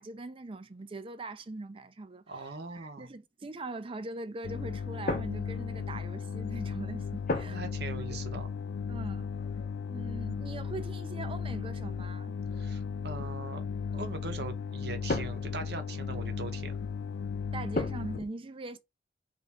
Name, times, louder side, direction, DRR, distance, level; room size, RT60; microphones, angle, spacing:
voice 1, 0.0-7.7 8.9-9.3 9.9-12.4 17.5-18.8, right 2 dB, 30° right, 0.5 m, -41 dB
voice 2, 2.3-3.1 7.4-8.5 12.6-13.6 13.9-16.8, right 3 dB, 70° right, 0.9 m, -41 dB
sound 1, 4.4-18.2, left 6 dB, 70° left, 0.3 m, -36 dB
sound 2, 5.1-6.3 7.3-7.8 8.1-8.4 9.3-10.5 11.4-11.5 12.0-12.7 14.6-15.8 17.7-18.3, left 2 dB, 50° left, 0.9 m, -36 dB
4.1 x 2.6 x 3.5 m
head